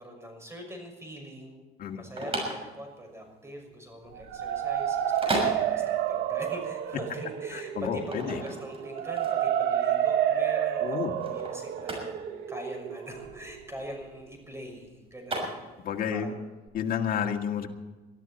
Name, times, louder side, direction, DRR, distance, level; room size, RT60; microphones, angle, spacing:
voice 1, 0.0-1.7 1.9-12.2 12.5-16.4, equal, 15° right, 3 dB, 6.0 m, -43 dB
sound 1, 1.8-16.1, right 1 dB, 35° right, 6.3 m, -36 dB
sound 2, 4.1-14.0, right 10 dB, 80° right, 1.3 m, -30 dB
voice 2, 7.5-8.4 10.8-11.2 15.8-16.3 16.7-17.7, left 8 dB, 60° left, 3 dB, 2.1 m, -30 dB
22.5 x 13.5 x 4.3 m, 1.2 s
cardioid pair, 110°, 17 cm